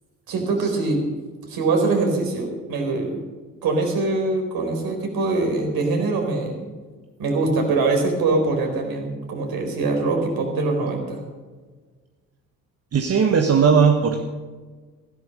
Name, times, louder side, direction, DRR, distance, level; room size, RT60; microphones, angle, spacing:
voice 1, 0.3-1.0 1.5-3.2 3.6-6.7 7.2-11.2, right 3 dB, 55° right, 3 dB, 4.4 m, -23 dB
voice 2, 12.9-14.2, right 6 dB, 35° right, 4 dB, 1.4 m, -17 dB
15.5 x 12.5 x 5.4 m, 1.4 s
figure-of-eight pair, 55°, 43 cm